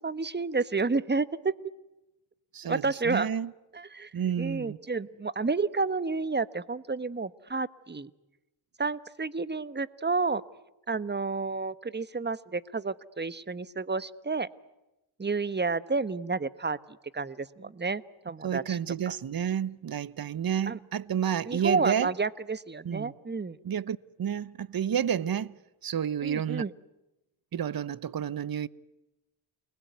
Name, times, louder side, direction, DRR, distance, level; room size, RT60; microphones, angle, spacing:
voice 1, 0.0-1.5 2.6-3.3 3.7-4.1 4.4-8.1 8.8-10.4 10.9-14.5 15.2-16.8 17.1-18.8 20.7-20.8 21.4-23.6 26.2-26.7, right 4 dB, 20° right, 1.3 m, -30 dB
voice 2, 2.5-3.5 4.1-4.8 18.4-22.1 22.8-23.1 23.6-25.6 25.8-26.6 27.5-28.7, right 9 dB, 45° right, 1.0 m, -30 dB
29.0 x 21.5 x 9.5 m
cardioid pair, 60°, 48 cm